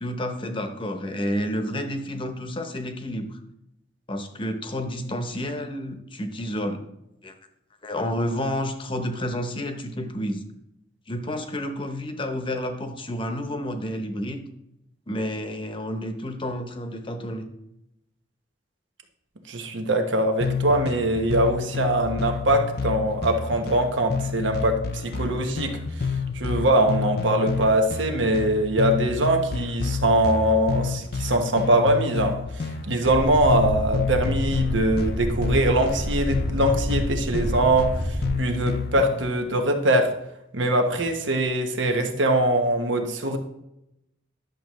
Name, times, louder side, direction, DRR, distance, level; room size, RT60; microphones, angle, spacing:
voice 1, 0.0-3.4 4.1-6.8 7.2-7.3 7.8-10.4 11.1-14.4 15.1-17.5, equal, 30° left, 7 dB, 0.8 m, -30 dB
voice 2, 19.5-25.8 26.3-32.4 32.6-40.1 40.5-43.4, right 1 dB, 90° right, 4 dB, 1.1 m, -22 dB
sound 1, 20.4-39.2, left 5 dB, 55° left, 0.5 m, -30 dB
sound 2, 33.1-38.4, equal, 5° right, 0.4 m, -29 dB
10.5 x 6.9 x 3.1 m, 0.85 s
head